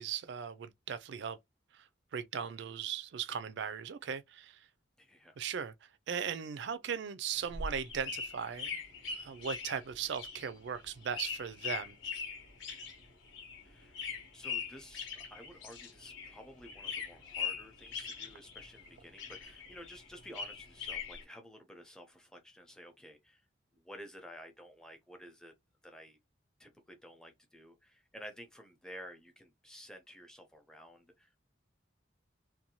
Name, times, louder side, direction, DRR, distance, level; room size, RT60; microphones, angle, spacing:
voice 1, 0.0-1.4 1.7-4.7 5.4-5.7 6.1-8.8 9.1-12.0, right 7 dB, 65° right, 0.3 m, -38 dB
voice 2, 5.0-5.4 13.6-14.0 14.3-23.4 23.7-25.5 25.8-26.2 26.6-31.4, equal, 5° left, 0.5 m, -52 dB
sound 1, 7.3-16.4 16.6-18.9 19.2-21.2, left 6 dB, 90° left, 1.1 m, -41 dB
2.6 x 2.2 x 2.9 m
head